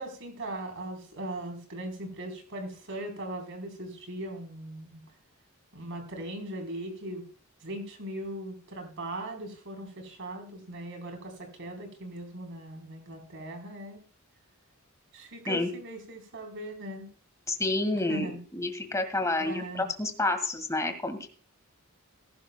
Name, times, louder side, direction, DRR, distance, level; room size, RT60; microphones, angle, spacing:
voice 1, 0.0-5.0 5.7-7.2 7.6-14.0 15.1-17.1 18.1-18.4 19.4-19.9, right 1 dB, 60° right, 4 dB, 4.0 m, -39 dB
voice 2, 17.5-18.3 18.5-21.3, left 2 dB, 15° left, 6 dB, 1.9 m, -29 dB
21.0 x 11.5 x 2.3 m, 0.40 s
head